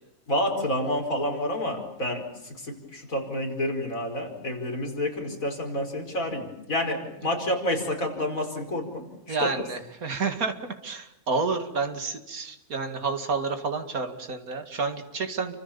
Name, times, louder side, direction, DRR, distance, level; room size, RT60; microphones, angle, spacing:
voice 1, 0.3-9.5, left 1 dB, 60° left, 3 dB, 5.3 m, -29 dB
voice 2, 9.3-15.5, right 4 dB, 70° right, 7 dB, 2.7 m, -30 dB
30.0 x 25.5 x 7.0 m, 0.87 s
omnidirectional pair, 1.6 m